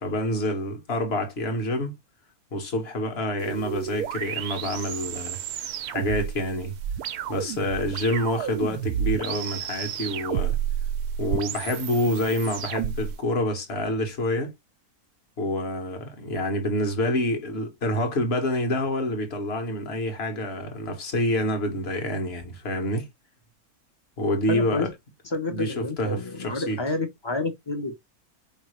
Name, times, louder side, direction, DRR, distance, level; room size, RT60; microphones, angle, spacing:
voice 1, 0.0-2.0 2.5-5.4 5.9-6.7 7.3-10.6 11.2-14.5 15.4-23.1 24.2-24.9 25.5-26.8, left 1 dB, 45° left, 1.5 m, -27 dB
sound 1, 3.4-13.2, right 9 dB, 85° right, 1.1 m, -31 dB
voice 2, 24.5-24.9 25.2-27.9, left 3 dB, 25° left, 0.7 m, -29 dB
4.7 x 3.2 x 3.2 m
omnidirectional pair, 1.6 m